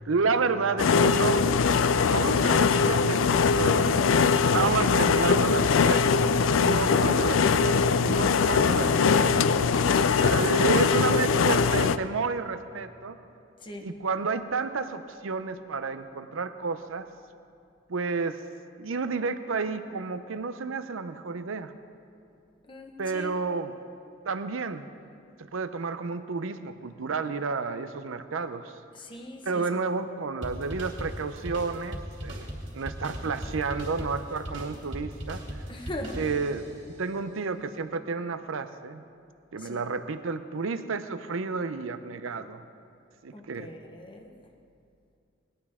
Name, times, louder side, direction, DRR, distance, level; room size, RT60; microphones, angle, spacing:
voice 1, 0.0-1.4 2.1-4.3 4.5-6.3 6.6-9.5 10.2-13.2 13.8-17.1 17.9-18.4 18.8-21.7 23.0-23.7 24.3-24.9 25.4-28.7 29.4-32.5 32.7-35.4 36.1-39.1 39.5-42.6 43.2-43.7, right 4 dB, 80° right, 10 dB, 0.6 m, -31 dB
sound 1, 0.8-12.0, left 5 dB, 75° left, 0.4 m, -22 dB
voice 2, 6.7-7.5 13.6-14.0 22.7-23.4 28.9-29.7 35.7-36.3 39.6-39.9 43.3-44.5, left 1 dB, 25° left, 3 dB, 1.1 m, -40 dB
sound 2, 30.4-36.8, equal, 30° right, 2.6 m, -38 dB
19.5 x 12.0 x 3.6 m, 2.5 s
head